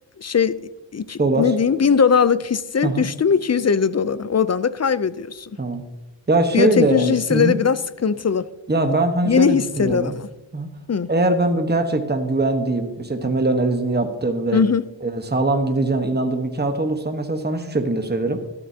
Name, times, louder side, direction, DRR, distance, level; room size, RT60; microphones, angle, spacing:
voice 1, 0.2-5.5 6.5-8.5 9.3-10.3 10.9-11.1 14.5-14.9, left 6 dB, 35° left, 0.5 m, -20 dB
voice 2, 1.2-1.5 2.8-3.1 5.6-5.8 6.3-7.6 8.7-10.2 10.5-10.7 11.1-14.6 15.0-18.4, right 2 dB, 20° right, 1.2 m, -21 dB
13.0 x 12.5 x 2.8 m
wide cardioid pair, 70°, 46 cm